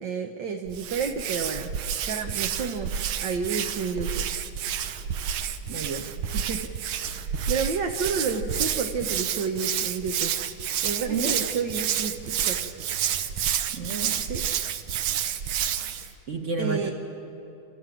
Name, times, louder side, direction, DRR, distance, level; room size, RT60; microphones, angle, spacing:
voice 1, 0.0-1.7 2.0-2.9 3.2-4.3 6.3-6.7 7.3-10.3 10.8-12.7 14.1-14.4 16.6-16.9, right 5 dB, 65° right, 3 dB, 1.7 m, -30 dB
Hands, 0.7-16.1, right 9 dB, 85° right, 1.7 m, -29 dB
voice 2, 5.7-6.0 11.1-11.4 13.7-14.2 16.3-16.9, right 4 dB, 40° right, 4 dB, 1.6 m, -30 dB
28.0 x 14.0 x 9.2 m, 2.9 s
omnidirectional pair, 2.2 m